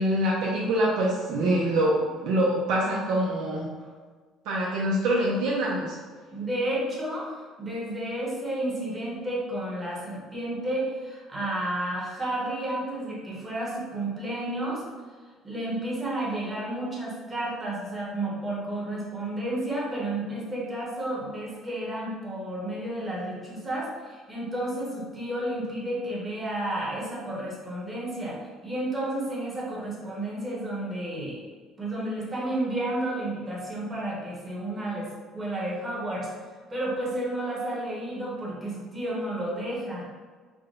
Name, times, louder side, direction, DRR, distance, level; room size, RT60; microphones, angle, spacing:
voice 1, 0.0-3.7 4.5-6.0, right 1 dB, 75° right, -4 dB, 0.6 m, -25 dB
voice 2, 6.3-14.8 15.4-28.4 28.6-31.4 31.8-36.3 36.7-40.1, right 1 dB, 20° right, -5 dB, 1.0 m, -31 dB
3.7 x 2.2 x 3.8 m, 1.5 s
cardioid pair, 150°, 0 cm